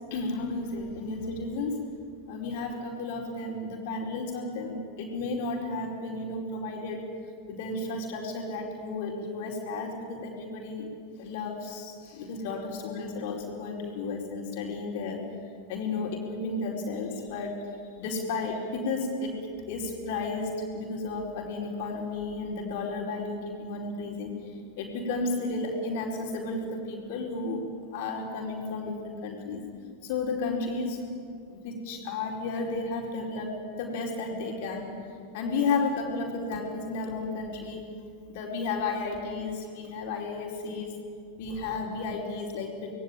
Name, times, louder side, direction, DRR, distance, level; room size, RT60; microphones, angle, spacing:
voice 1, 0.1-1.8 2.3-7.1 7.5-10.9 11.2-15.2 15.7-17.6 18.0-19.4 19.7-27.6 27.9-29.6 30.0-31.0 31.5-34.9 35.3-37.9 38.3-40.9 41.4-43.0, left 3 dB, 50° left, 0 dB, 4.6 m, -33 dB
26.5 x 20.5 x 9.3 m, 2.3 s
figure-of-eight pair, 90°, 0 cm